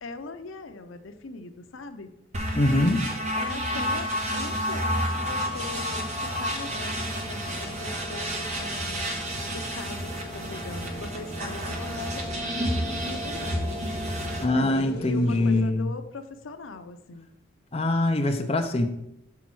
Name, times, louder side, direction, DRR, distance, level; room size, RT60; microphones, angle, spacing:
voice 1, 0.0-2.2 3.4-9.1 9.5-13.8 14.5-17.3, left 3 dB, 85° left, 9 dB, 0.6 m, -41 dB
sound 1, 2.3-14.4, equal, 35° right, 1.2 m, -30 dB
voice 2, 2.5-3.0 14.4-15.9 17.7-18.9, left 2 dB, 30° left, 4 dB, 0.7 m, -23 dB
sound 2, 4.9-15.6, equal, 50° left, 1.3 m, -41 dB
sound 3, 4.9-14.6, left 1 dB, 5° left, 2.9 m, -42 dB
5.8 x 5.1 x 6.2 m, 0.82 s
head